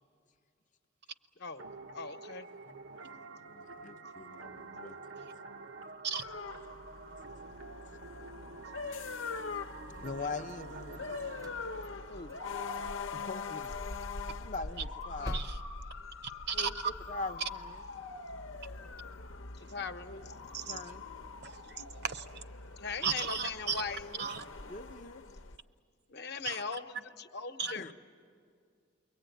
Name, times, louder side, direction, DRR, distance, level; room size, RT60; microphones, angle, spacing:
sound 1, 1.6-12.9, right 3 dB, 90° right, 0.9 m, -48 dB
voice 1, 1.9-2.5 12.1-12.3 15.2-15.4 16.5-16.7 19.7-20.3 22.8-24.3 26.1-27.9, left 5 dB, 55° left, 7 dB, 0.9 m, -40 dB
voice 2, 3.1-5.0 10.0-11.0 13.1-13.7 14.4-15.4 16.8-17.8 20.7-21.1 24.7-25.2 27.7-27.9, left 3 dB, 40° left, 8 dB, 0.6 m, -42 dB
sound 2, 6.2-25.6, left 4 dB, 85° left, 0.8 m, -43 dB
sound 3, 9.8-11.0 11.3-12.5 12.7-12.8 13.2-13.4 13.6-13.7 14.1-16.7, equal, 20° right, 0.6 m, -44 dB
voice 3, 16.5-16.9 20.5-20.8 21.4-22.4 23.0-23.8 24.2-24.4 26.4-26.6 27.6-27.7, right 6 dB, 55° right, 10 dB, 0.8 m, -35 dB
29.5 x 22.0 x 9.2 m, 2.3 s
head